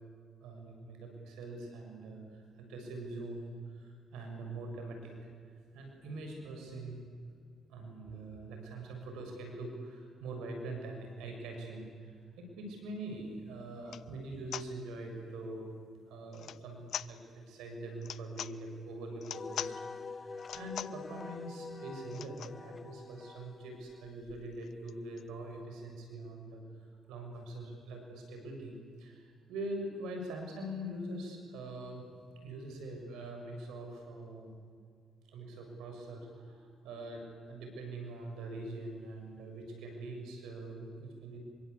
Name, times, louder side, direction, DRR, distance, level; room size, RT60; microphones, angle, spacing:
voice 1, 0.4-5.1 5.7-15.7 16.1-26.6 27.1-32.1 32.4-34.5 35.3-41.4, right 2 dB, 85° right, 3 dB, 7.1 m, -43 dB
sound 1, 13.2-13.3 13.8-14.1 14.5-14.7 16.3-16.6 16.9-17.1 18.0-18.5 19.2-19.8 20.4-21.0 22.1-22.6 23.1-23.2 23.4-23.5 23.8-25.3, left 10 dB, 70° left, 0.7 m, -43 dB
Wind instrument woodwind instrument, 19.3-24.1, left 4 dB, 35° left, 0.6 m, -46 dB
26.5 x 24.5 x 8.5 m, 2.2 s
supercardioid pair, 70°, 0 cm